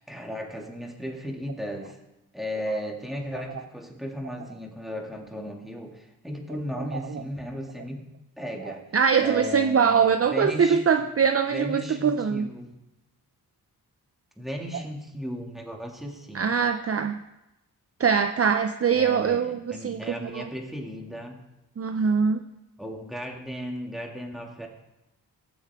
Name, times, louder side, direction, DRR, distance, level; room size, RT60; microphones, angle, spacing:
voice 1, 0.0-2.0 2.3-8.0 8.4-8.8 9.2-10.8 11.5-12.8 14.4-16.5 18.9-21.4 22.8-24.7, equal, ahead, 1 dB, 2.3 m, -35 dB
voice 2, 8.7-12.5 16.3-17.2 18.0-20.5 21.8-22.4, right 6 dB, 35° right, 8 dB, 0.6 m, -23 dB
17.5 x 7.3 x 3.6 m, 0.94 s
cardioid pair, 60°, 39 cm